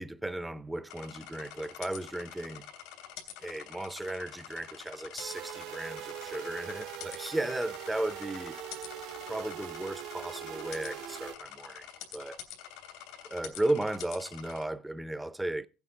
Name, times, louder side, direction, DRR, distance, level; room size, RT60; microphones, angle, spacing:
voice 1, 0.0-2.7 3.4-8.6 9.3-11.9 12.1-12.4 13.2-15.7, right 1 dB, 5° right, 0.6 m, -35 dB
sound 1, 0.9-14.6, left 10 dB, 85° left, 2.7 m, -47 dB
sound 2, 5.2-11.4, right 12 dB, 70° right, 0.7 m, -42 dB
15.5 x 8.3 x 3.7 m
cardioid pair, 120°, 0 cm